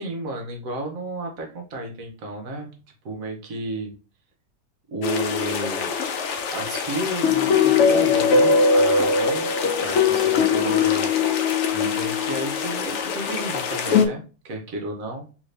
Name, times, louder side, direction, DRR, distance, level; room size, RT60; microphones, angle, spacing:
voice 1, 0.0-2.7 3.0-3.9 4.9-5.9 6.5-9.5 9.8-11.1 11.7-15.3, right 2 dB, 65° right, 2 dB, 1.0 m, -32 dB
sound 1, 5.0-14.1, left 5 dB, 85° left, 0.6 m, -21 dB
3.1 x 2.6 x 3.2 m, 0.35 s
omnidirectional pair, 1.8 m